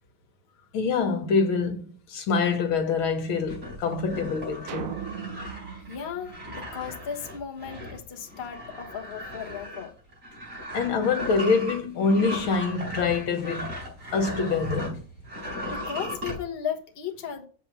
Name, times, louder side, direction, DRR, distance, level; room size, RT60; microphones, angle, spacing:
voice 1, 0.7-4.9 10.7-13.7 14.1-15.0, left 4 dB, 75° left, 1.9 m, -25 dB
sound 1, 3.5-15.0 15.2-16.4, left 1 dB, 30° right, 4.9 m, -37 dB
sound 2, 4.7-7.1, right 8 dB, 80° right, 0.7 m, -38 dB
voice 2, 5.9-9.9 15.4-17.5, left 8 dB, 35° left, 1.1 m, -36 dB
7.3 x 5.5 x 5.5 m
omnidirectional pair, 2.3 m